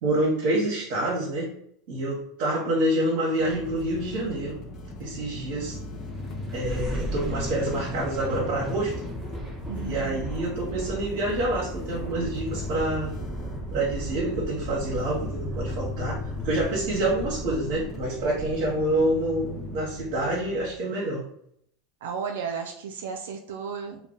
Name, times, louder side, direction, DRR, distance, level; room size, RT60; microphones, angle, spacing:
voice 1, 0.0-1.5 1.9-4.6 5.0-5.8 6.5-8.9 9.8-13.1 13.7-16.2 16.4-21.2, right 1 dB, 60° right, -4 dB, 0.8 m, -27 dB
sound 1, 3.4-20.7, left 2 dB, 40° left, 0.5 m, -38 dB
sound 2, 5.9-19.0, right 1 dB, ahead, 1.1 m, -37 dB
voice 2, 9.7-10.2 22.0-24.1, right 6 dB, 85° right, 3 dB, 0.3 m, -34 dB
2.2 x 2.1 x 3.7 m, 0.69 s
supercardioid pair, 110°, 0 cm